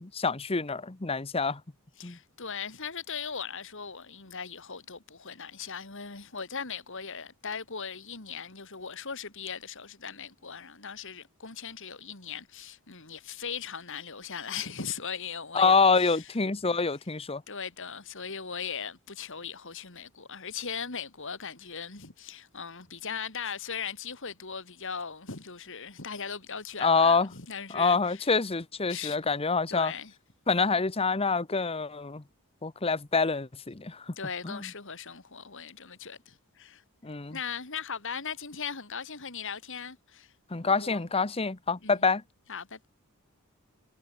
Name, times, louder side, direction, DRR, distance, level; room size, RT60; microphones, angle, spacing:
voice 1, 0.0-1.6 2.0-2.2 15.5-17.4 26.8-27.3 27.7-29.9 30.5-32.2 32.6-34.1 34.4-34.6 37.0-37.4 40.5-42.2, left 4 dB, 25° left, 0.9 m, -26 dB
voice 2, 2.0-16.3 17.5-28.3 28.9-29.2 29.7-30.1 34.2-36.8 37.3-40.3 40.6-41.0 41.8-42.0 42.5-42.9, left 6 dB, 60° left, 3.0 m, -39 dB
head